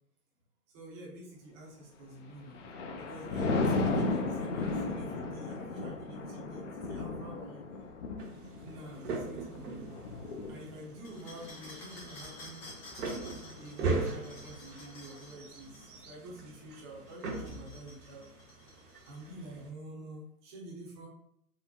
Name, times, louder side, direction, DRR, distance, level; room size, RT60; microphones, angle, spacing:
voice 1, 0.7-2.7 3.0-7.6 8.6-10.0 10.5-12.6 13.6-18.2 19.0-21.1, right 1 dB, 15° right, -3 dB, 0.5 m, -48 dB
Thunder, 2.2-13.7 14.2-14.5, left 3 dB, 50° left, 0.5 m, -35 dB
sound 1, 8.2-19.7, right 3 dB, 75° right, 0.8 m, -40 dB
sound 2, 11.0-15.9 17.0-19.4, left 1 dB, 20° left, 0.9 m, -51 dB
3.8 x 2.1 x 2.3 m, 0.72 s
hypercardioid pair, 130°, 47 cm